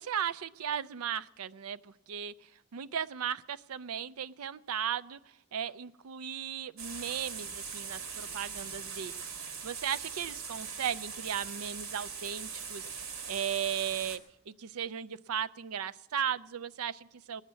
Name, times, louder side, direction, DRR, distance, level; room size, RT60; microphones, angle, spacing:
voice 1, 0.0-2.3 2.7-5.2 5.5-14.2 14.5-17.4, right 8 dB, 85° right, 16 dB, 0.5 m, -36 dB
sound 1, 6.8-14.2, right 6 dB, 65° right, 1.8 m, -41 dB
19.0 x 7.3 x 9.4 m, 0.87 s
head